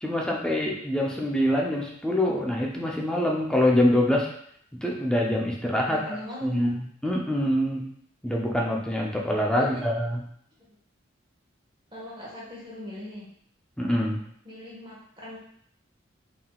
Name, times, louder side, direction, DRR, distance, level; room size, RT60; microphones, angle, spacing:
voice 1, 0.0-4.3 4.8-6.0 6.4-7.8 8.2-10.2 13.8-14.2, left 1 dB, 5° left, -2 dB, 0.5 m, -25 dB
voice 2, 5.8-6.8 9.6-9.8 11.9-13.3 14.4-15.4, left 1 dB, 25° right, -5 dB, 1.3 m, -40 dB
3.8 x 3.8 x 2.3 m, 0.65 s
head